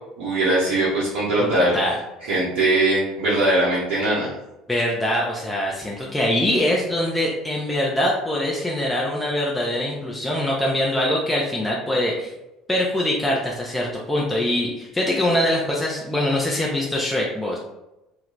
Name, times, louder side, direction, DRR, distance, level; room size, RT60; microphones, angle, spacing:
voice 1, 0.2-1.8 2.2-4.3, right 2 dB, 65° right, -8 dB, 0.7 m, -21 dB
voice 2, 1.4-1.9 4.7-12.3 12.7-17.6, left 1 dB, 10° left, -3 dB, 0.5 m, -23 dB
2.3 x 2.1 x 3.1 m, 0.93 s
hypercardioid pair, 65°, 0 cm